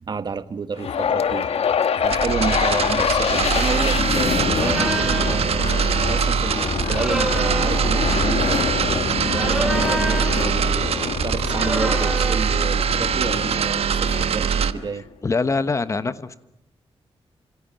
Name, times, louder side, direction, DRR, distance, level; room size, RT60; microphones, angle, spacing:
voice 1, 0.0-1.5 2.0-5.6 6.0-15.1, right 5 dB, 40° right, 1.1 m, -30 dB
sound 1, 0.8-15.0, left 7 dB, 70° left, 1.3 m, -26 dB
sound 2, 2.0-14.7, right 7 dB, 70° right, 1.2 m, -23 dB
sound 3, 4.5-5.4 6.8-7.9 9.2-10.5 11.5-12.5, right 1 dB, 5° right, 1.1 m, -28 dB
voice 2, 15.2-16.4, left 4 dB, 30° left, 1.1 m, -23 dB
29.5 x 26.5 x 7.6 m
wide cardioid pair, 165°, 11 cm